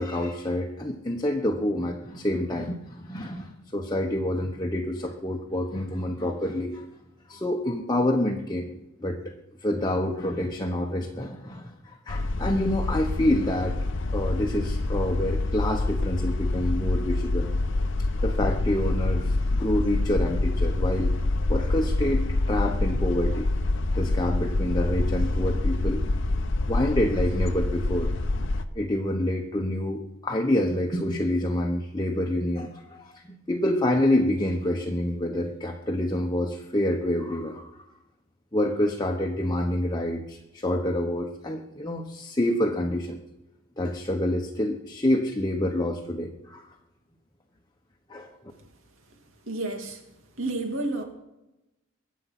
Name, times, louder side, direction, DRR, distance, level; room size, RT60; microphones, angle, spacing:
voice 1, 0.0-6.8 7.3-8.7 9.0-9.3 9.6-13.8 14.1-17.5 18.2-21.1 21.5-23.5 23.9-26.0 26.7-28.1 28.7-33.1 33.5-37.7 38.5-43.2 43.8-46.6 48.1-48.3, left 1 dB, 20° left, 1 dB, 1.1 m, -27 dB
sound 1, 12.1-28.6, left 2 dB, 60° left, 0.9 m, -26 dB
voice 2, 49.5-50.0 50.4-51.0, right 2 dB, 70° right, 4 dB, 2.6 m, -30 dB
22.5 x 8.4 x 6.0 m, 0.96 s
head